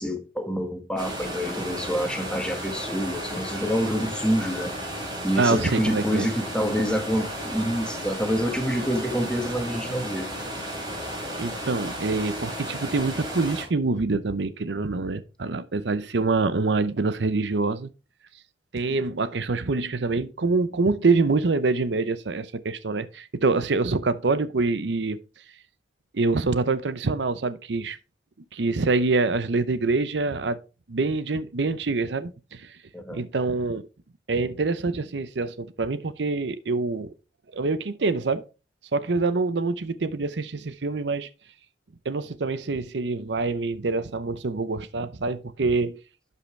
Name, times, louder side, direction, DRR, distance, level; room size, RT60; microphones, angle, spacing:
voice 1, 0.0-4.7 5.2-10.3 32.9-33.2, equal, 5° left, 1.5 m, -27 dB
sound 1, 1.0-13.6, equal, 25° right, 3.9 m, -34 dB
voice 2, 5.4-6.3 11.4-17.9 18.7-25.2 26.1-28.0 28.5-30.6 30.9-32.8 33.1-33.9 34.3-37.1 37.5-38.4 38.9-41.3 42.1-46.0, right 3 dB, 80° right, 0.7 m, -25 dB
11.5 x 5.5 x 3.3 m
head